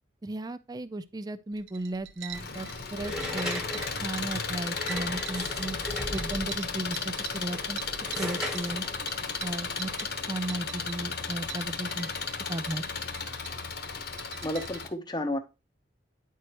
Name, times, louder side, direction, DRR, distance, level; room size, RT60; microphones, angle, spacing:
voice 1, 0.2-3.6 3.9-5.8 6.1-7.8 8.2-8.8 9.4-9.9 10.3-12.1 12.5-12.8, right 2 dB, 20° right, 0.4 m, -35 dB
sound 1, 1.5-14.8, right 9 dB, 75° right, 0.8 m, -46 dB
Engine, 2.3-14.9, left 5 dB, 55° left, 1.1 m, -35 dB
sound 2, 3.0-6.7 7.4-10.3, equal, 5° right, 1.2 m, -37 dB
voice 2, 14.4-15.4, left 1 dB, 20° left, 0.8 m, -31 dB
9.7 x 4.6 x 2.9 m
head